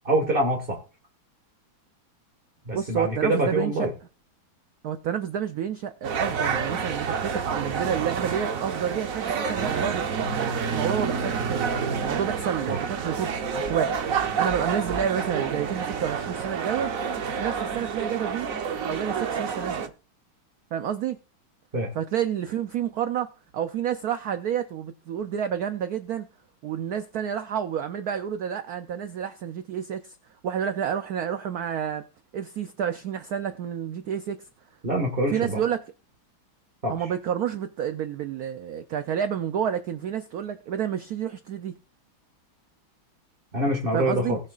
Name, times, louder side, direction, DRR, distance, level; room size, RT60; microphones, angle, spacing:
voice 1, 0.0-0.8 2.7-3.9 12.7-12.8 21.7-21.9 34.8-35.6 36.8-36.9 43.5-44.4, right 1 dB, 30° right, 1.7 m, -25 dB
voice 2, 2.7-3.9 4.8-10.1 10.7-11.7 12.0-14.0 14.4-16.9 17.3-18.5 18.8-19.9 20.7-21.2 21.9-26.3 26.6-30.2 30.4-32.0 32.3-34.4 35.3-35.8 36.9-41.8 43.9-44.4, right 9 dB, 80° right, 0.8 m, -29 dB
sound 1, 6.0-19.9, right 6 dB, 55° right, 1.1 m, -28 dB
20.0 x 6.7 x 2.4 m
omnidirectional pair, 2.3 m